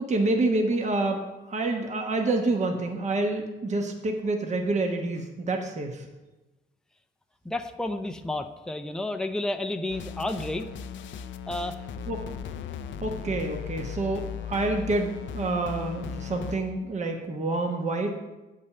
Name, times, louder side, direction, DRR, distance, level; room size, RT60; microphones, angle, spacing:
voice 1, 0.0-6.1 12.1-12.2 13.0-18.2, right 2 dB, 35° right, 3 dB, 1.1 m, -28 dB
voice 2, 7.4-10.7 11.5-11.8, left 1 dB, 5° left, 6 dB, 0.6 m, -31 dB
sound 1, 9.9-16.6, left 7 dB, 70° left, 0.6 m, -37 dB
8.4 x 5.3 x 6.6 m, 1.1 s
cardioid pair, 90°, 20 cm